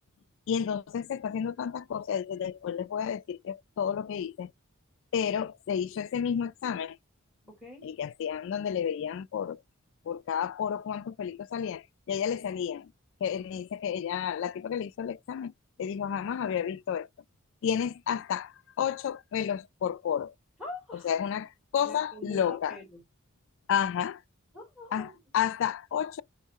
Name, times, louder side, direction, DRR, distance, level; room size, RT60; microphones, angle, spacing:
voice 1, 0.5-4.5 5.1-7.0 7.8-9.6 10.1-12.9 13.2-15.5 15.8-17.1 17.6-20.3 21.0-22.8 23.7-24.2 24.9-26.2, left 8 dB, 65° left, 0.3 m, -31 dB
voice 2, 7.5-7.8 20.6-21.1 21.8-23.0 24.5-25.1, left 2 dB, 5° right, 3.1 m, -44 dB
4.6 x 3.1 x 2.6 m
head